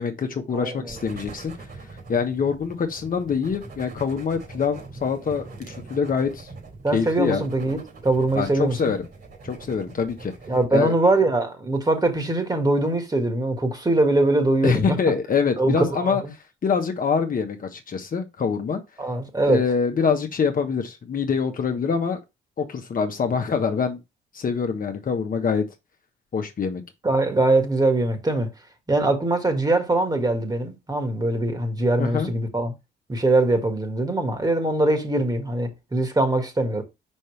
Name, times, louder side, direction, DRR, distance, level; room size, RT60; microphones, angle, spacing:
voice 1, 0.0-1.5 2.1-6.5 6.9-7.4 8.3-9.0 9.4-10.3 10.7-10.9 14.6-16.2 16.6-18.8 19.5-22.2 22.6-24.0 24.3-25.6 26.3-26.8 32.0-32.3, left 6 dB, 45° left, 1.2 m, -25 dB
voice 2, 0.5-1.1 6.8-8.9 10.5-15.0 15.6-16.3 19.0-19.6 27.0-28.5 28.9-32.7 33.1-36.8, right 2 dB, 20° right, 1.8 m, -22 dB
sound 1, 0.9-10.6, right 3 dB, 50° right, 2.8 m, -42 dB
5.4 x 5.3 x 3.2 m
cardioid pair, 90°, 20 cm